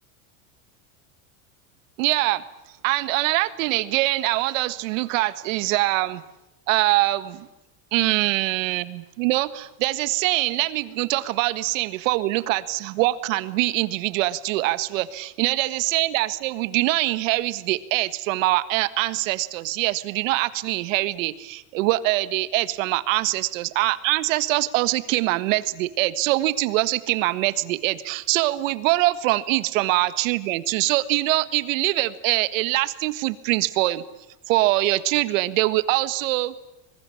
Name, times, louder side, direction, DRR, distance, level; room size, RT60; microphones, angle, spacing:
voice 1, 2.0-2.4 2.8-6.2 6.7-7.5 7.9-34.0 34.5-36.5, right 18 dB, 70° right, 15 dB, 1.6 m, -23 dB
25.5 x 22.0 x 8.6 m, 0.92 s
supercardioid pair, 160°, 41 cm